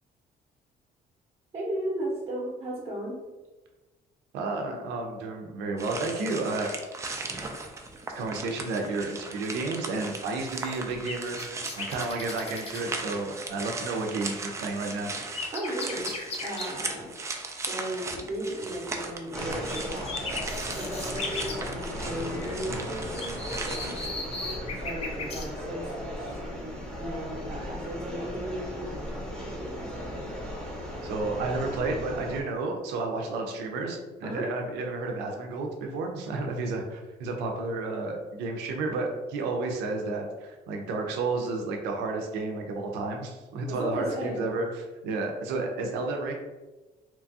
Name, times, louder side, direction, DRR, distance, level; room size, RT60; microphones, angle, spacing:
voice 1, 1.5-3.2 15.5-17.1 17.6-20.2 20.7-24.0 24.8-30.3 34.2-34.5 43.7-44.4, right 1 dB, 35° right, -5 dB, 0.7 m, -36 dB
voice 2, 4.3-6.7 8.1-11.4 11.8-15.1 31.0-46.3, right 3 dB, 90° right, 2 dB, 0.5 m, -31 dB
sound 1, 5.8-24.1, right 3 dB, 15° right, 0.3 m, -38 dB
sound 2, 10.5-12.9 14.9-16.7 19.7-19.8 20.1-21.6 23.1-25.5 28.9-29.1, left 3 dB, 35° left, 0.5 m, -37 dB
sound 3, 19.3-32.4, equal, 5° left, 0.7 m, -36 dB
2.9 x 2.3 x 2.6 m, 1.2 s
cardioid pair, 110°, 17 cm